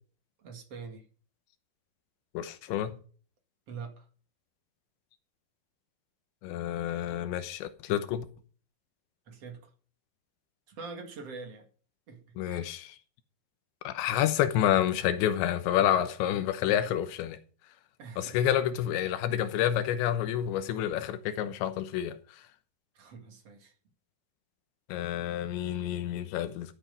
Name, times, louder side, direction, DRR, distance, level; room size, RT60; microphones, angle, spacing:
voice 1, 0.4-1.0 3.7-4.1 9.3-9.7 10.7-11.7 12.1-12.7 18.0-18.3 22.9-23.7, right 4 dB, 45° right, 2.4 m, -44 dB
voice 2, 2.3-3.0 6.4-8.3 12.4-13.0 13.8-17.4 18.2-22.2 24.9-26.8, left 11 dB, 85° left, 3.3 m, -29 dB
13.5 x 8.0 x 5.2 m
omnidirectional pair, 5.1 m